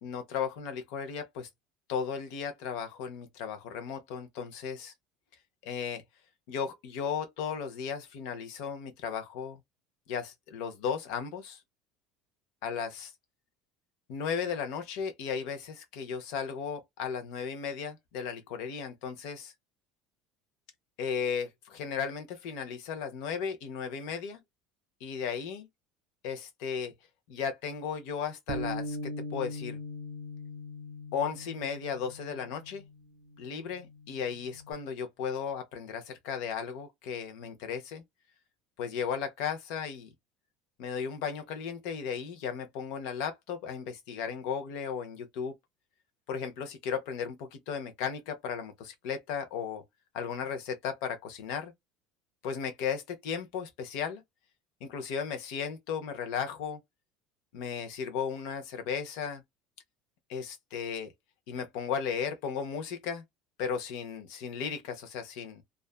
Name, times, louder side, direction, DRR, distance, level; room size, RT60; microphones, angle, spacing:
voice 1, 0.0-1.5 1.9-4.9 5.6-6.0 6.5-9.6 10.1-11.6 12.6-13.1 14.1-19.5 21.0-24.4 25.0-25.7 26.2-26.9 27.3-29.8 31.1-32.8 33.4-38.0 38.8-40.1 40.8-45.5 46.3-49.8 50.1-51.7 52.4-54.2 54.8-56.8 57.5-59.4 60.3-61.1 61.5-63.2 63.6-65.6, left 7 dB, 65° left, 0.6 m, -35 dB
Bass guitar, 28.5-34.7, left 1 dB, 60° right, 0.5 m, -41 dB
2.4 x 2.2 x 2.3 m
cardioid pair, 160°, 0 cm